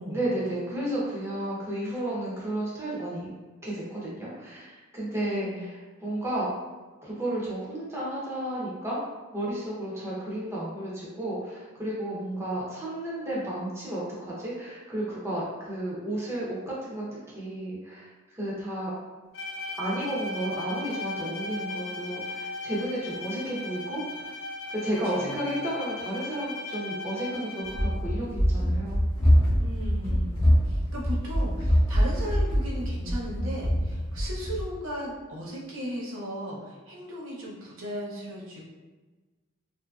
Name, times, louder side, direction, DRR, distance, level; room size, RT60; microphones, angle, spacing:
voice 1, 0.1-3.3 3.6-6.5 7.0-9.0 9.3-17.1 17.3-18.9 19.8-24.3 24.7-29.0, right 1 dB, 15° right, -7 dB, 0.6 m, -32 dB
voice 2, 5.2-5.6 25.1-25.4 29.5-38.7, equal, 75° right, -4 dB, 0.6 m, -37 dB
Bowed string instrument, 19.3-28.1, left 2 dB, 65° left, 0.4 m, -37 dB
Run, 27.7-34.7, equal, 25° left, 0.7 m, -24 dB
2.8 x 2.5 x 2.3 m, 1.3 s
head